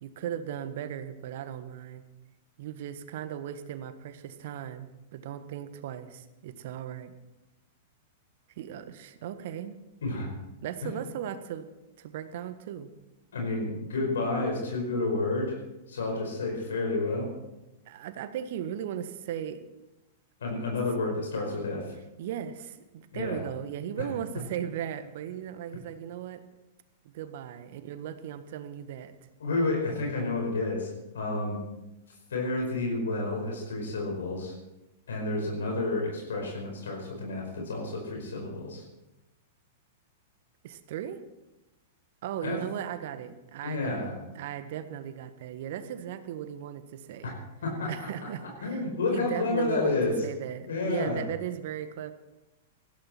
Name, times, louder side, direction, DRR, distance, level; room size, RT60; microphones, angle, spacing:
voice 1, 0.0-2.0 2.6-7.1 8.6-9.8 10.6-11.7 12.0-12.9 17.8-19.6 22.2-26.4 27.0-29.1 40.6-41.2 42.2-47.3 47.9-48.8 49.1-50.0 50.2-52.1, right 10 dB, 55° right, 10 dB, 1.4 m, -37 dB
voice 2, 13.3-15.6 15.9-17.3 20.4-21.9 23.1-23.4 29.4-31.6 32.3-34.5 35.1-38.8 42.4-42.6 43.6-44.2 47.2-47.3 47.6-48.3 48.6-50.2 50.7-51.2, left 2 dB, 70° left, 0 dB, 5.0 m, -30 dB
19.5 x 15.5 x 4.4 m, 0.97 s
figure-of-eight pair, 100°, 0 cm